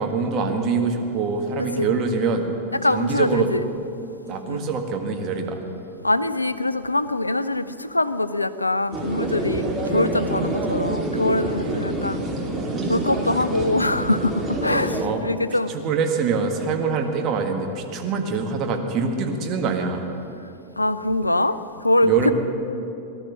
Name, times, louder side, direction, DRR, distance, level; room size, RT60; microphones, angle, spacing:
voice 1, 0.0-2.5 2.9-3.5 4.3-5.6 12.7-13.1 15.0-15.2 15.7-20.1 22.0-22.3, right 5 dB, 35° right, 3 dB, 1.7 m, -24 dB
voice 2, 2.8-3.7 4.5-4.7 6.0-12.2 12.9-15.7 20.8-22.3, left 2 dB, 85° left, 14 dB, 0.4 m, -23 dB
sound 1, 8.9-15.0, right 2 dB, 20° right, 2.2 m, -26 dB
18.5 x 12.0 x 6.2 m, 2.8 s
figure-of-eight pair, 90°, 0 cm